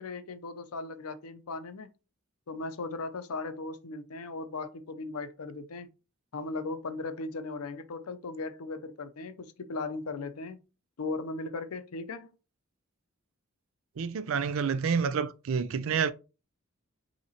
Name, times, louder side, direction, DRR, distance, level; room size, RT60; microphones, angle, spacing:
voice 1, 0.0-1.9 2.5-5.9 6.3-10.6 11.0-12.3, left 3 dB, 85° left, 0.6 m, -37 dB
voice 2, 14.0-16.1, right 6 dB, 65° right, 0.4 m, -28 dB
5.5 x 2.9 x 2.8 m
head